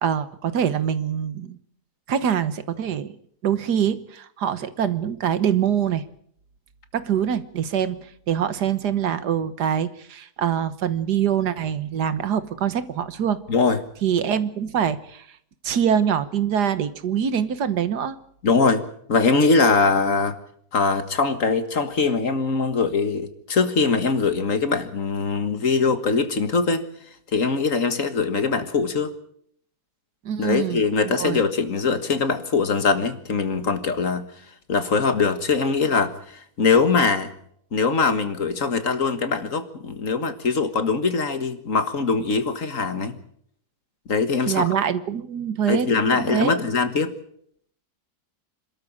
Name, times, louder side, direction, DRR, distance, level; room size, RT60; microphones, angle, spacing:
voice 1, 0.0-1.6 2.1-3.2 3.4-6.0 6.9-8.0 8.3-13.4 14.0-15.3 15.6-18.2 30.3-31.4 44.5-45.9 46.1-46.5, right 8 dB, 80° right, 13 dB, 1.7 m, -24 dB
voice 2, 13.5-13.8 18.4-18.8 19.1-20.4 20.7-26.8 27.3-29.1 30.4-34.3 34.7-37.3 37.7-43.2 44.1-44.7 45.7-47.1, left 4 dB, 55° left, 9 dB, 2.0 m, -22 dB
26.5 x 13.0 x 8.8 m, 0.68 s
omnidirectional pair, 1.7 m